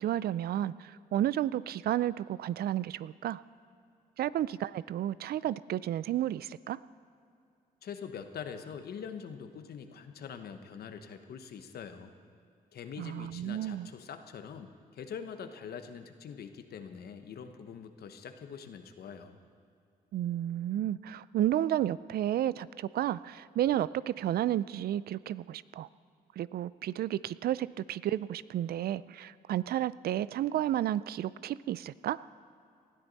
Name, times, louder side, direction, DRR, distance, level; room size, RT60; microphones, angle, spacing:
voice 1, 0.0-3.4 4.2-6.8 13.0-13.9 20.1-25.9 26.4-32.2, right 12 dB, 65° right, 18 dB, 0.4 m, -32 dB
voice 2, 7.8-12.1 12.7-19.4, left 7 dB, 70° left, 8 dB, 1.1 m, -44 dB
19.5 x 13.0 x 4.1 m, 2.5 s
supercardioid pair, 65°, 17 cm